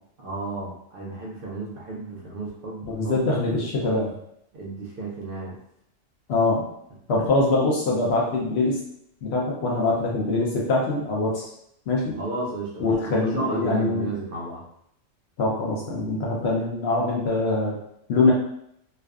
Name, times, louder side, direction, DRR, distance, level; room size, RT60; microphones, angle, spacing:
voice 1, 0.2-3.2 4.5-5.6 12.0-14.6 16.5-16.6, right 3 dB, 60° right, -3 dB, 0.6 m, -33 dB
voice 2, 2.9-4.1 6.3-6.6 7.1-8.8 9.2-11.5 11.9-12.2 12.8-14.1 15.4-17.8 18.1-18.3, left 2 dB, 65° left, -2 dB, 0.7 m, -23 dB
2.5 x 2.3 x 2.3 m, 0.74 s
omnidirectional pair, 1.4 m